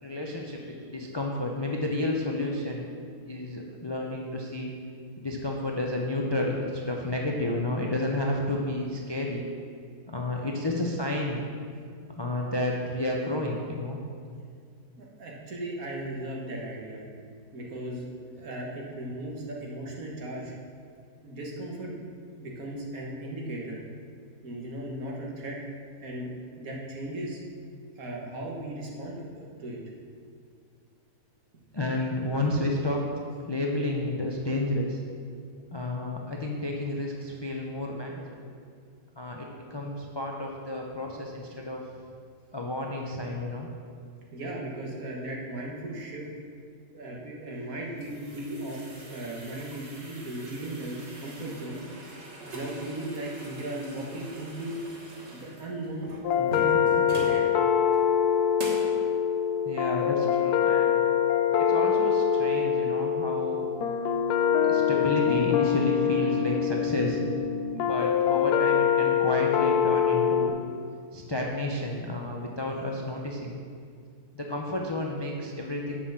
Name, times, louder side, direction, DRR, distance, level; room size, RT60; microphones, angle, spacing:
voice 1, 0.0-2.9 3.3-4.7 5.2-9.5 10.1-11.4 12.1-14.0 31.7-33.1 33.4-35.0 35.7-38.5 39.2-41.8 42.5-43.7 59.6-61.0 61.6-63.6 64.6-67.2 67.7-70.5 71.1-73.6 74.3-76.1, left 1 dB, 45° left, -1 dB, 0.3 m, -31 dB
voice 2, 15.0-17.0 17.5-20.5 21.2-22.0 22.4-23.8 24.4-25.6 26.0-27.4 28.0-29.8 44.3-46.2 46.9-51.8 52.5-54.8 55.3-57.5, right 1 dB, 60° right, -2 dB, 1.8 m, -37 dB
sound 1, 47.6-57.4 57.9-58.0 58.6-58.9, right 1 dB, 45° right, 1.6 m, -42 dB
sound 2, 56.2-70.5, left 8 dB, 75° left, 1.1 m, -24 dB
6.9 x 5.6 x 7.2 m, 2.2 s
omnidirectional pair, 1.7 m